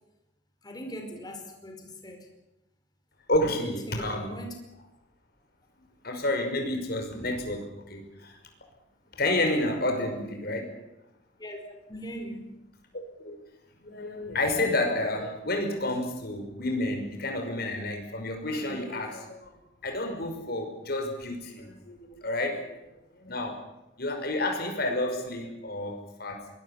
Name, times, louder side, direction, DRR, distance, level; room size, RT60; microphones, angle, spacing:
voice 1, 0.6-2.3 3.5-4.5 11.4-12.6, equal, 20° left, 3 dB, 4.8 m, -40 dB
voice 2, 3.3-4.3 6.0-8.3 9.1-10.8 12.9-13.4 13.8-19.5 19.8-22.9 23.1-23.6 24.0-26.4, left 1 dB, 60° left, 4 dB, 5.6 m, -30 dB
24.5 x 21.0 x 7.3 m, 0.92 s
head